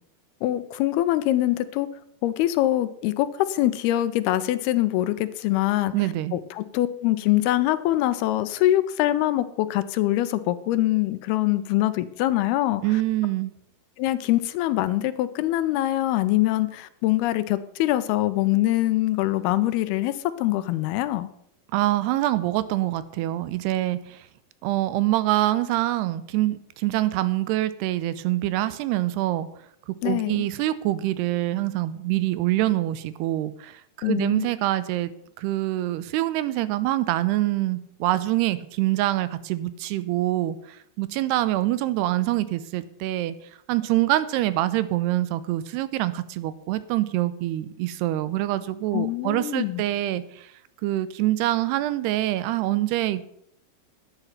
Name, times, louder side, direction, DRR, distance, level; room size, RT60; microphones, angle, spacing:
voice 1, 0.4-1.9 2.2-5.9 6.3-12.8 14.0-20.1 20.4-21.3 30.0-30.5 34.0-34.5 48.9-49.8, left 15 dB, 80° left, 13 dB, 2.6 m, -24 dB
voice 2, 5.9-6.4 12.8-13.5 21.7-24.2 24.6-29.5 30.0-35.1 35.4-40.6 41.0-43.3 43.7-50.5 50.8-53.2, right 15 dB, 85° right, 15 dB, 2.8 m, -25 dB
11.5 x 9.2 x 5.8 m, 0.71 s
omnidirectional pair, 4.6 m